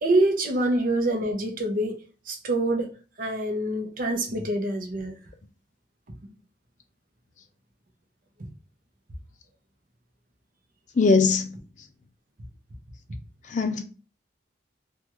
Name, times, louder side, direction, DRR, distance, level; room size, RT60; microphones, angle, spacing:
voice 1, 0.0-2.0 2.3-5.1 8.4-8.5, right 1 dB, 50° right, 0.7 m, -26 dB
voice 2, 11.0-11.5 13.5-13.8, left 4 dB, 45° left, 0.4 m, -20 dB
3.4 x 2.3 x 2.9 m
head